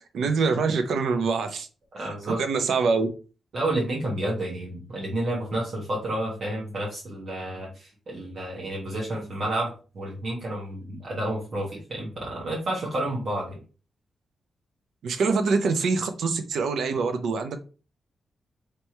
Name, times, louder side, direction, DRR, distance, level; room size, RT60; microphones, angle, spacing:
voice 1, 0.0-1.7 2.3-3.1 15.0-17.6, right 4 dB, 80° right, 8 dB, 0.7 m, -25 dB
voice 2, 1.9-2.4 3.5-13.6, right 1 dB, 50° right, -3 dB, 1.3 m, -30 dB
3.3 x 3.1 x 4.4 m, 0.35 s
wide cardioid pair, 135°, 0 cm